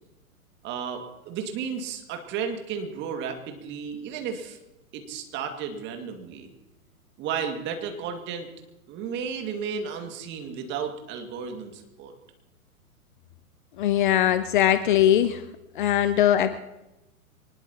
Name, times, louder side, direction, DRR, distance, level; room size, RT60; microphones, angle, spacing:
voice 1, 0.6-4.6 4.9-6.5 7.2-8.5 8.9-12.1 15.8-16.1, right 6 dB, 25° right, 4 dB, 2.1 m, -33 dB
voice 2, 13.8-15.4 15.8-16.6, left 11 dB, 35° left, 12 dB, 0.7 m, -21 dB
24.0 x 20.0 x 2.9 m, 0.97 s
figure-of-eight pair, 115°, 44 cm